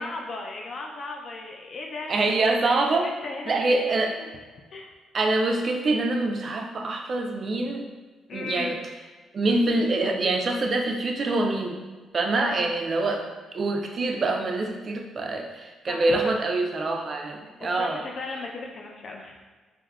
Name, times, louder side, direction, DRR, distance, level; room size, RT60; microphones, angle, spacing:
voice 1, 0.0-2.1 2.6-4.4 4.7-5.0 8.3-8.8 12.3-12.7 15.8-16.3 17.6-19.5, left 3 dB, 50° left, 1 dB, 0.4 m, -36 dB
voice 2, 2.1-3.1 3.5-4.2 5.1-7.8 8.3-8.8 9.3-11.8 12.1-13.3 13.5-18.0, right 2 dB, 45° right, 3 dB, 0.3 m, -25 dB
3.4 x 2.0 x 2.3 m, 1.4 s
cardioid pair, 90°, 0 cm